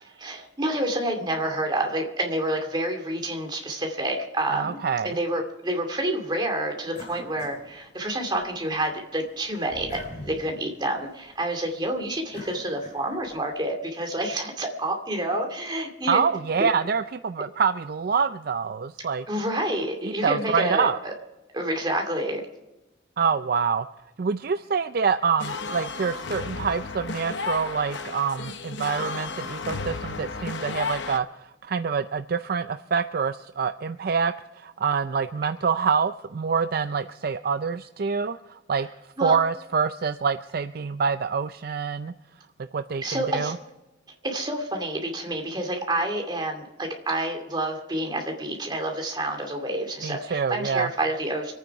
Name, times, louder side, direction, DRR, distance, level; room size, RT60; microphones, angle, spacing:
voice 1, 0.2-4.8 5.0-16.2 16.6-16.7 19.3-21.1 21.5-22.4 39.2-39.4 43.0-43.5 44.2-51.5, right 1 dB, 25° right, 3 dB, 2.4 m, -28 dB
voice 2, 4.5-5.2 16.1-19.3 20.0-21.0 23.2-23.9 24.2-38.9 39.2-42.1 42.7-43.6 50.0-50.9, right 6 dB, 50° right, 11 dB, 0.4 m, -26 dB
sound 1, 6.9-8.5 8.9-13.4, left 1 dB, 40° left, 2.9 m, -44 dB
sound 2, 25.4-31.2, left 4 dB, 65° left, 0.9 m, -33 dB
25.5 x 9.3 x 4.7 m, 0.99 s
head